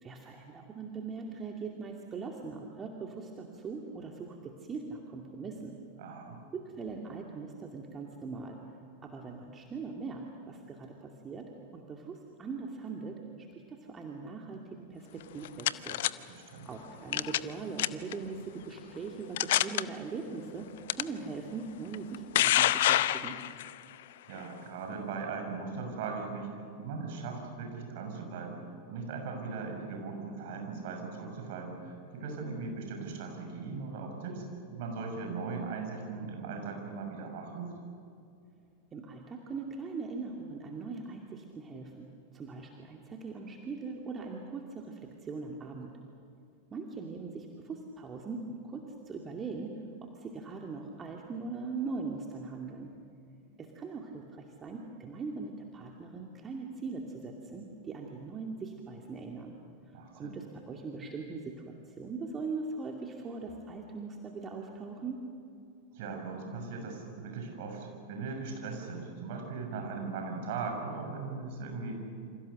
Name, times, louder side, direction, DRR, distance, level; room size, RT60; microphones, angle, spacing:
voice 1, 0.0-5.7 6.5-8.6 9.0-11.5 11.7-16.0 16.7-23.4 38.9-42.1 42.3-45.9 46.7-49.7 50.0-52.9 53.6-59.5 60.1-61.5 62.0-65.2, right 4 dB, 20° right, 1 dB, 2.4 m, -41 dB
voice 2, 6.0-6.4 16.2-16.7 24.3-26.5 26.8-28.6 28.9-34.4 34.7-37.7 59.9-60.4 65.9-72.1, right 4 dB, 50° right, 3 dB, 7.0 m, -39 dB
sound 1, 15.2-16.1 17.1-17.5 17.8-18.1 18.8-18.9 19.4-19.8 20.9-21.0 21.9-23.7, left 14 dB, 55° left, 0.7 m, -26 dB
28.5 x 27.0 x 6.6 m, 2.5 s
figure-of-eight pair, 90°, 0 cm